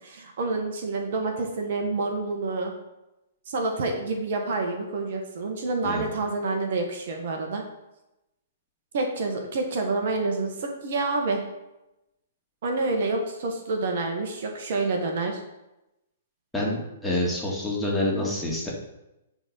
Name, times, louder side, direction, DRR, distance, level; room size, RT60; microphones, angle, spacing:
voice 1, 0.0-2.7 3.5-7.6 8.9-11.4 12.6-15.4, right 3 dB, 60° right, 3 dB, 1.3 m, -28 dB
voice 2, 16.5-18.7, left 1 dB, 5° left, -4 dB, 2.2 m, -27 dB
9.8 x 3.9 x 5.4 m, 0.93 s
hypercardioid pair, 120°, 0 cm